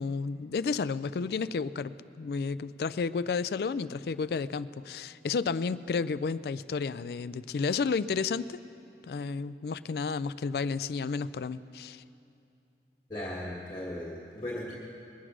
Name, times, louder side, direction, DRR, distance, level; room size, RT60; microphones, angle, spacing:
voice 1, 0.0-8.6 9.1-12.0, left 5 dB, 65° left, 15 dB, 0.3 m, -32 dB
voice 2, 13.1-14.7, left 1 dB, 25° left, -6 dB, 1.5 m, -37 dB
21.5 x 8.0 x 6.2 m, 2.6 s
head